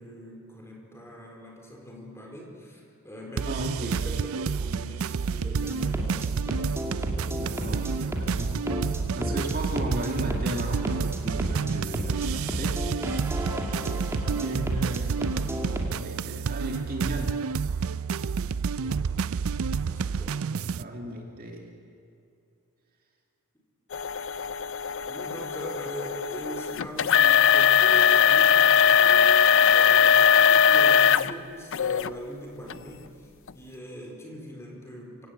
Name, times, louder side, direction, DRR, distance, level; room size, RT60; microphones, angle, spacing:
voice 1, 0.0-6.4 18.8-19.3 19.8-20.6 25.1-35.3, equal, 10° left, 0 dB, 4.1 m, -41 dB
sound 1, 3.4-20.8, right 5 dB, 70° right, 0.4 m, -29 dB
voice 2, 3.5-3.9 7.3-8.6 8.9-12.8 14.2-15.1 15.6-17.4 20.6-21.7, right 1 dB, 45° right, 1 dB, 2.5 m, -35 dB
sound 2, 5.5-15.9, equal, 10° right, 2.2 m, -34 dB
sound 3, 23.9-31.3 31.7-32.1 32.7-32.8 33.5-33.6, left 8 dB, 60° left, 0.5 m, -20 dB
25.5 x 17.0 x 8.1 m, 2.6 s
head